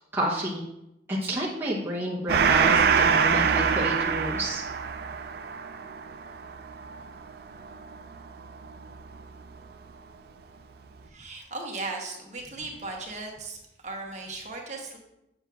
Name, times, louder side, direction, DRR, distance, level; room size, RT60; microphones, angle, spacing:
voice 1, 0.1-0.6 1.1-4.6, right 1 dB, 10° right, -5 dB, 0.8 m, -29 dB
Gong, 2.3-9.2, right 6 dB, 55° right, 0.4 m, -25 dB
voice 2, 11.0-15.0, right 3 dB, 40° right, 0 dB, 1.0 m, -37 dB
7.5 x 5.7 x 2.4 m, 0.88 s
head